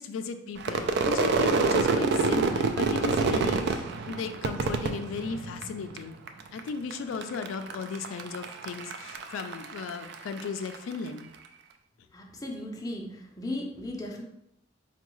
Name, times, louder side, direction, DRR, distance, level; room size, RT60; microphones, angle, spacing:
voice 1, 0.0-6.2 6.5-11.3, left 5 dB, 85° left, 8 dB, 0.3 m, -36 dB
Crowd / Fireworks, 0.6-6.0 6.3-6.9 7.2-10.8, right 4 dB, 60° right, 0.3 m, -27 dB
voice 2, 12.1-14.2, left 1 dB, 20° left, 0 dB, 0.5 m, -36 dB
4.4 x 2.2 x 3.0 m, 0.77 s
head